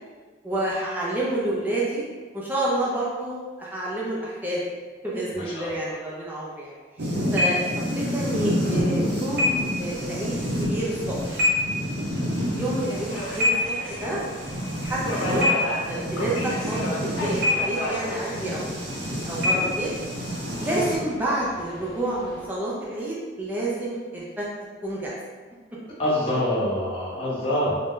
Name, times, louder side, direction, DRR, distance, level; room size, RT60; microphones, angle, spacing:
voice 1, 0.4-2.0 2.3-4.6 5.0-11.4 12.6-13.6 14.0-19.9 20.6-24.5 24.8-25.1, right 1 dB, 10° right, -6 dB, 0.3 m, -29 dB
voice 2, 5.3-5.9 12.3-12.6 20.8-20.9 26.0-27.8, left 1 dB, 30° left, -9 dB, 0.7 m, -26 dB
sound 1, 7.0-21.0, left 1 dB, 55° right, 0.6 m, -27 dB
Subway metro underground, 8.8-22.5, left 1 dB, 85° left, 0.6 m, -36 dB
2.5 x 2.1 x 3.5 m, 1.4 s
head